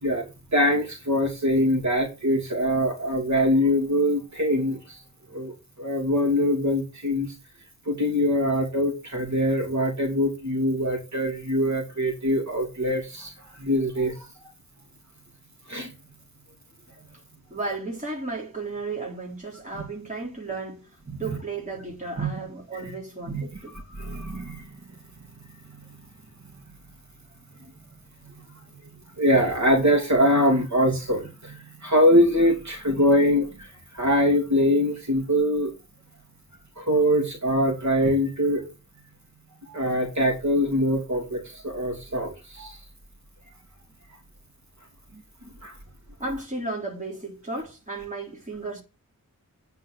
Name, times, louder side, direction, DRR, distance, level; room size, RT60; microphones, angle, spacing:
voice 1, 0.0-5.0 5.3-7.3 7.8-14.2 15.7-15.9 21.1-21.2 22.2-22.3 23.3-23.4 23.9-24.7 29.2-35.7 36.8-38.6 39.6-42.8 45.6-45.7, equal, 50° right, 2.9 m, -23 dB
voice 2, 17.5-20.9 21.2-23.8 46.2-48.8, right 3 dB, 20° right, 3.5 m, -34 dB
9.3 x 5.1 x 6.7 m
wide cardioid pair, 100°, 35 cm